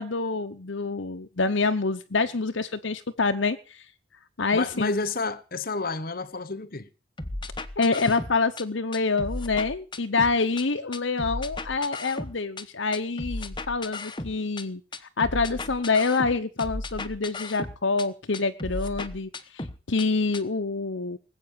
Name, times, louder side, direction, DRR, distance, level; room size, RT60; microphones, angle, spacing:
voice 1, 0.0-3.9 4.4-4.9 7.8-21.2, left 4 dB, 65° left, 0.9 m, -26 dB
voice 2, 4.5-6.9, left 3 dB, 45° left, 1.2 m, -30 dB
sound 1, 7.2-8.6 8.9-10.6 10.9-12.6 12.9-14.6 14.9-18.1 18.3-20.1 20.3-20.4, left 2 dB, 25° left, 1.0 m, -35 dB
20.0 x 8.3 x 7.6 m
head